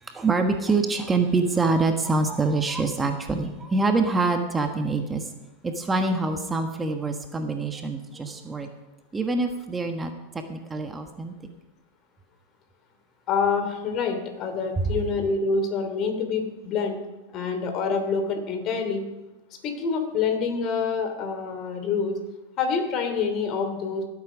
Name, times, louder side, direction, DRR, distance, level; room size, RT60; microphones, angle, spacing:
voice 1, 0.1-5.2 5.6-8.7 9.1-10.1 10.5-11.3, right 3 dB, 15° right, 5 dB, 1.3 m, -25 dB
voice 2, 13.3-17.0 17.3-19.0 19.6-22.2 22.6-24.0, left 5 dB, 40° left, 6 dB, 2.9 m, -26 dB
17.0 x 8.6 x 5.1 m, 1.0 s
hypercardioid pair, 110°, 0 cm